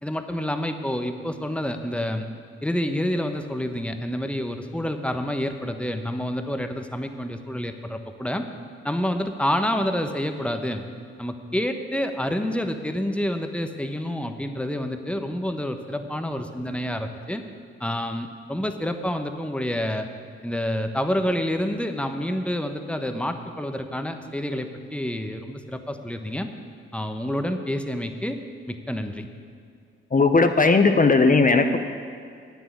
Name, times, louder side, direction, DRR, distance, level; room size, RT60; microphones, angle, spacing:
voice 1, 0.0-2.3 2.6-8.5 8.8-10.8 11.2-17.4 17.8-20.1 20.4-26.5 26.9-28.4 28.7-29.3, left 1 dB, 5° left, 7 dB, 1.2 m, -28 dB
voice 2, 30.1-31.8, left 3 dB, 25° left, 7 dB, 0.9 m, -17 dB
9.4 x 8.0 x 8.5 m, 2.3 s
hypercardioid pair, 40°, 30 cm